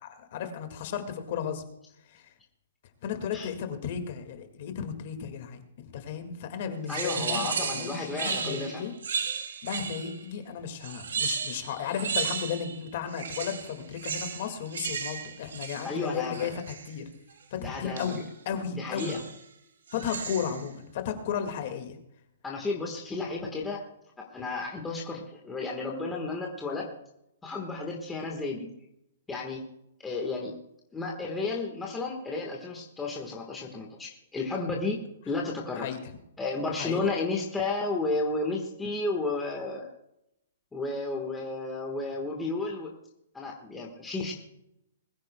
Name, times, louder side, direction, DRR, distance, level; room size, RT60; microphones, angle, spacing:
voice 1, 0.0-1.6 2.1-2.3 3.0-8.9 9.6-17.0 17.5-19.2 19.9-22.0 35.8-36.0 36.8-37.0, left 7 dB, 35° left, 6 dB, 1.9 m, -34 dB
voice 2, 6.9-8.9 15.8-16.5 17.6-18.2 18.7-19.2 22.4-23.8 24.3-26.8 27.4-28.7 29.3-29.6 30.0-30.5 30.9-35.0 35.2-35.9 36.4-39.9 40.7-42.9 43.3-44.3, left 3 dB, 5° left, -2 dB, 1.4 m, -32 dB
sound 1, 6.9-10.3 10.8-12.8 13.1-16.9 18.0-18.3 19.0-19.4 19.9-20.7, right 6 dB, 75° right, 2.5 m, -34 dB
21.5 x 14.5 x 2.2 m, 0.79 s
hypercardioid pair, 175°, 0 cm